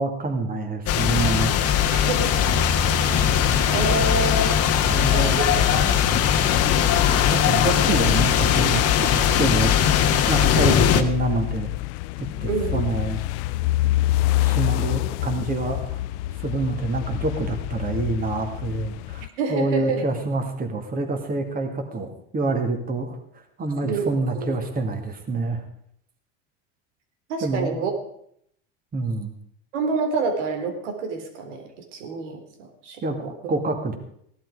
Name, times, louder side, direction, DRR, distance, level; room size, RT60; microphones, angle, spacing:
voice 1, 0.0-1.5 4.9-5.4 7.2-11.7 12.2-13.2 14.4-16.0 16.4-23.2 23.6-25.6 27.4-27.8 28.9-29.3 33.0-34.0, right 3 dB, 25° right, 4 dB, 2.4 m, -27 dB
sound 1, 0.9-11.0, left 9 dB, 45° left, 1.3 m, -20 dB
voice 2, 1.9-2.5 3.7-4.6 5.0-6.1 12.5-12.9 19.4-20.0 23.8-24.5 27.3-27.9 29.7-33.3, right 4 dB, 90° right, 5 dB, 3.3 m, -28 dB
Bus, 2.4-8.3, left 2 dB, 5° left, 3.4 m, -32 dB
sound 2, 6.5-19.3, left 17 dB, 75° left, 0.5 m, -28 dB
17.0 x 11.5 x 4.9 m, 0.69 s
supercardioid pair, 130°, 35 cm